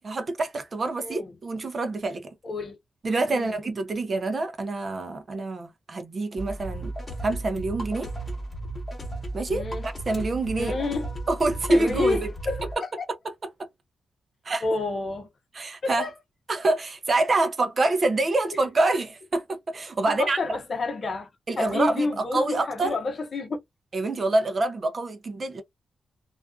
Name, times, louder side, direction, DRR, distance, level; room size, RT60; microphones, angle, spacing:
voice 1, 0.0-2.3 3.0-6.9 7.2-8.1 9.3-10.8 11.3-12.2 14.5-14.6 15.5-16.1 16.5-20.4 21.5-22.9 23.9-25.6, right 2 dB, 35° right, 0.4 m, -26 dB
voice 2, 1.0-1.4 2.4-2.8 3.3-3.5 9.5-9.9 10.6-11.1 11.7-12.9 14.6-15.3 15.8-16.1 18.5-18.7 20.0-21.3 21.6-23.6, left 3 dB, 40° left, 0.7 m, -29 dB
sound 1, 6.4-12.7, right 2 dB, 20° left, 1.0 m, -34 dB
2.4 x 2.3 x 2.2 m
wide cardioid pair, 150°, 0 cm